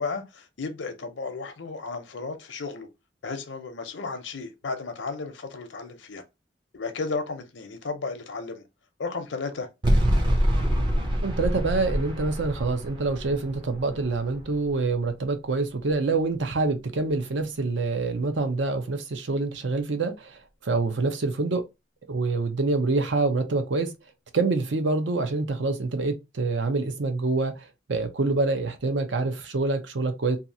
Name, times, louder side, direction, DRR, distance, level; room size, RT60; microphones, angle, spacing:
voice 1, 0.0-2.9 3.2-6.2 6.7-8.6 9.0-9.7, left 4 dB, 80° left, 0.6 m, -34 dB
sound 1, 9.8-15.0, equal, 25° right, 0.5 m, -26 dB
voice 2, 11.2-21.6 22.1-23.9 24.3-30.4, right 3 dB, 75° right, 0.6 m, -26 dB
2.7 x 2.4 x 2.6 m
head